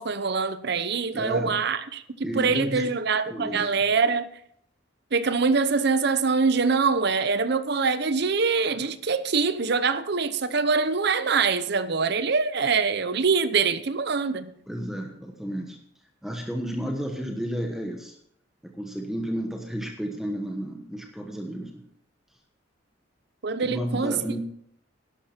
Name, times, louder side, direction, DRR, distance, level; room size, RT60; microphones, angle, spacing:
voice 1, 0.0-4.3 5.1-14.5 23.4-24.2, right 4 dB, 60° right, 0.8 m, -24 dB
voice 2, 1.1-1.6 2.2-2.9 3.3-3.7 14.7-15.8 16.2-18.2 18.6-21.8 23.6-24.4, equal, ahead, 1.1 m, -32 dB
11.5 x 11.5 x 4.4 m
head